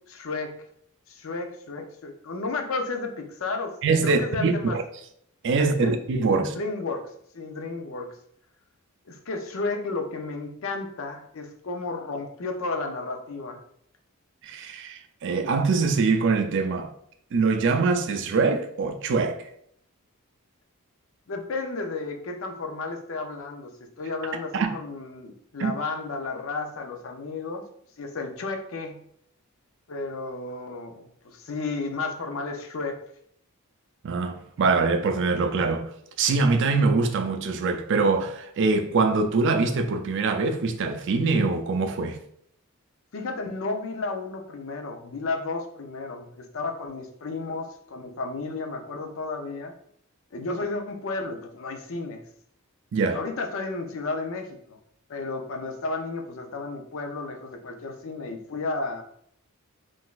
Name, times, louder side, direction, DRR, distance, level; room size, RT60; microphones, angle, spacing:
voice 1, 0.1-0.6 1.1-3.7 4.0-4.8 5.6-6.0 6.3-8.1 9.1-13.6 21.3-27.6 28.0-29.0 29.9-33.0 43.1-49.7 50.3-52.2 53.1-54.8 55.1-59.0, left 3 dB, 60° left, 0.5 m, -33 dB
voice 2, 3.8-4.8 5.4-6.6 14.4-16.9 17.3-19.5 24.5-24.8 25.6-25.7 34.0-42.2 52.9-53.2, right 4 dB, 55° right, 0.4 m, -24 dB
3.7 x 2.5 x 2.4 m
head